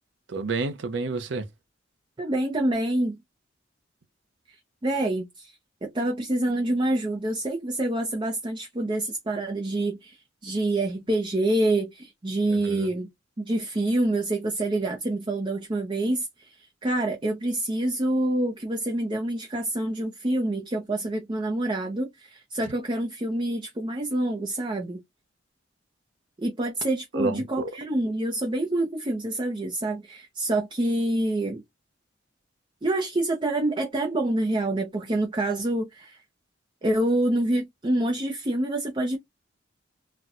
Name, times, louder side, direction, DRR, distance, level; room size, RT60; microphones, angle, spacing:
voice 1, 0.3-1.4 12.5-12.9 27.1-27.7, right 3 dB, 70° right, 0.6 m, -29 dB
voice 2, 2.2-3.2 4.5-4.6 4.8-13.1 13.4-25.0 26.4-31.6 32.8-36.2 36.8-39.2, right 1 dB, 25° right, 0.5 m, -27 dB
4.2 x 2.1 x 2.4 m
head